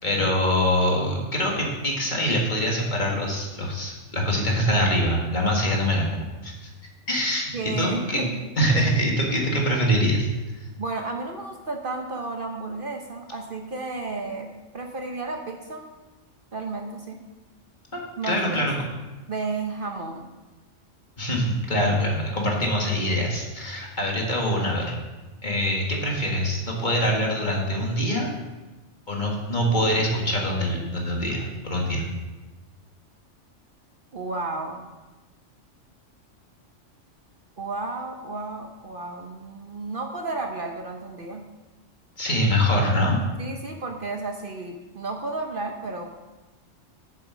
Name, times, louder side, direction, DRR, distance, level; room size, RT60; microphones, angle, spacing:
voice 1, 0.0-6.7 7.1-8.2 8.6-10.3 17.9-18.7 21.2-24.9 25.4-28.3 29.1-32.1 42.2-43.2, equal, 40° left, -1 dB, 1.9 m, -24 dB
voice 2, 7.5-8.3 10.8-15.8 16.5-17.2 18.2-18.7 19.3-20.2 34.1-34.8 37.6-41.4 43.4-46.1, right 3 dB, 50° right, 3 dB, 1.0 m, -32 dB
8.7 x 7.1 x 6.2 m, 1.2 s
omnidirectional pair, 1.3 m